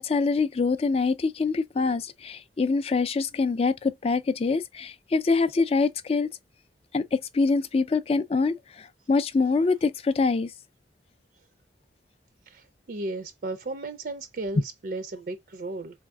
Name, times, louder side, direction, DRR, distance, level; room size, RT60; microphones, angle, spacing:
voice 1, 0.0-6.3 6.9-10.5, left 4 dB, 35° left, 0.3 m, -25 dB
voice 2, 12.5-16.0, right 2 dB, 55° right, 0.4 m, -35 dB
4.0 x 3.5 x 2.2 m
head